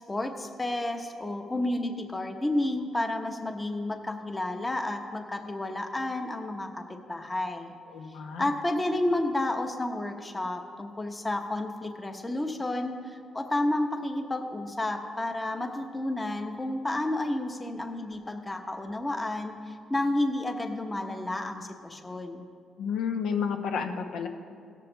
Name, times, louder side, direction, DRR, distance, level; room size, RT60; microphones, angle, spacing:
voice 1, 0.1-7.7 8.4-22.4, left 1 dB, 15° left, 5 dB, 0.9 m, -31 dB
voice 2, 7.9-8.5 22.8-24.3, left 6 dB, 75° left, 5 dB, 0.9 m, -31 dB
17.0 x 6.6 x 3.9 m, 2.3 s
cardioid pair, 90°, 0 cm